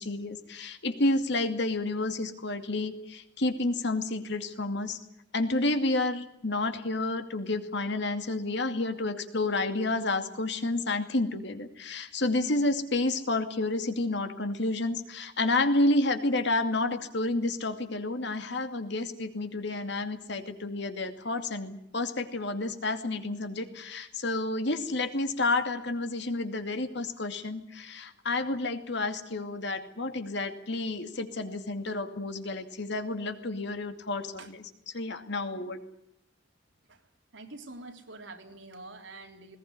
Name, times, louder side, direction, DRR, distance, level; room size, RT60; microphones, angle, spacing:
voice 1, 0.0-5.0 5.3-34.3 34.9-35.8, left 2 dB, 65° left, 8 dB, 2.5 m, -30 dB
voice 2, 37.3-39.6, right 2 dB, 85° right, 4 dB, 3.7 m, -46 dB
20.5 x 19.0 x 9.6 m, 0.77 s
head